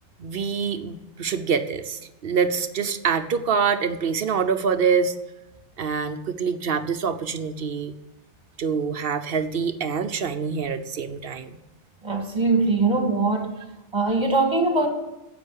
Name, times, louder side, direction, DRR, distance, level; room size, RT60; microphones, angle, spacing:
voice 1, 0.2-5.1 5.8-7.9 8.6-11.6, right 6 dB, 60° right, 10 dB, 0.9 m, -25 dB
voice 2, 12.0-13.5 13.9-14.9, right 3 dB, 25° right, 3 dB, 1.8 m, -21 dB
10.0 x 7.9 x 8.1 m, 1.0 s
omnidirectional pair, 1.2 m